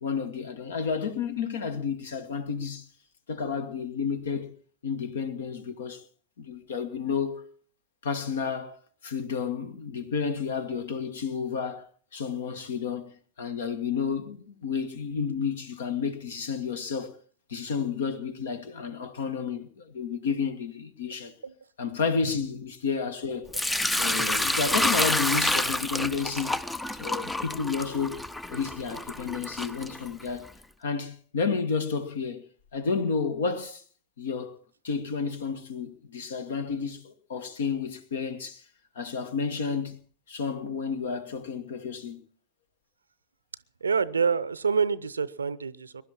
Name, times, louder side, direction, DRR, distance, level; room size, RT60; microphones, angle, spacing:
voice 1, 0.0-2.9 3.3-4.5 4.8-6.0 6.4-7.4 8.0-17.1 17.5-21.3 21.8-23.5 23.9-26.6 27.0-30.5 30.8-32.4 32.7-33.8 34.2-34.6 34.8-38.6 38.9-40.0 40.3-42.2, left 5 dB, 60° left, 1.6 m, -31 dB
Sink (filling or washing) / Liquid, 23.5-30.5, left 1 dB, 5° left, 0.6 m, -28 dB
voice 2, 43.8-46.0, right 5 dB, 75° right, 0.6 m, -27 dB
22.0 x 11.5 x 4.3 m
figure-of-eight pair, 90°, 0 cm